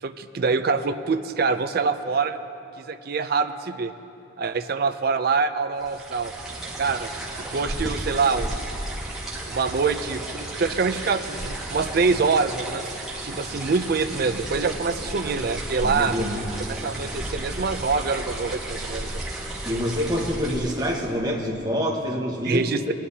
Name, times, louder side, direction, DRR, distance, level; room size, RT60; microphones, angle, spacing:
voice 1, 0.0-2.4 2.8-3.9 4.4-6.3 6.8-7.1 7.5-8.6 9.5-12.9 13.2-16.1 16.7-19.2 22.4-22.9, right 4 dB, 50° right, 9 dB, 0.4 m, -25 dB
sound 1, 5.8-21.2, right 1 dB, 5° right, 1.3 m, -33 dB
voice 2, 15.8-16.4 19.6-22.9, equal, 20° right, -2 dB, 1.3 m, -26 dB
20.0 x 10.0 x 2.8 m, 2.9 s
head